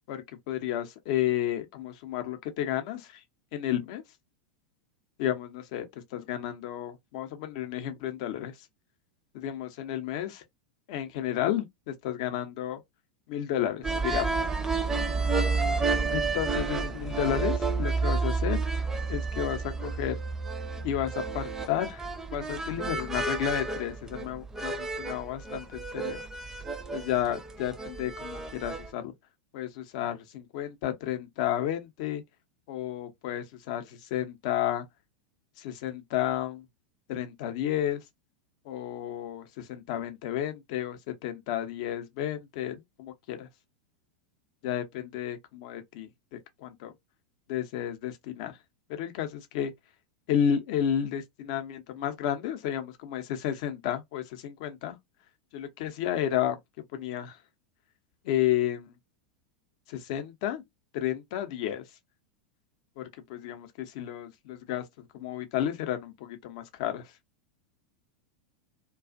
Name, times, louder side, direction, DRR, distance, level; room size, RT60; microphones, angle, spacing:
voice 1, 0.1-3.2 3.5-4.0 5.2-5.8 6.1-8.6 9.3-10.4 10.9-12.8 13.3-14.3 16.1-18.6 19.1-20.2 20.8-22.0 22.3-26.2 26.9-29.1 29.5-32.2 32.7-34.9 35.6-36.6 37.1-38.0 38.6-43.5 44.6-46.1 46.6-46.9 47.5-48.6 48.9-49.7 50.3-55.0 55.5-56.6 56.9-57.4 58.2-58.9 59.9-60.6 60.9-61.8 63.0-67.1, left 11 dB, 55° left, 0.7 m, -32 dB
sound 1, 13.8-28.9, right 4 dB, 10° right, 0.5 m, -31 dB
2.4 x 2.3 x 2.4 m
figure-of-eight pair, 90°, 4 cm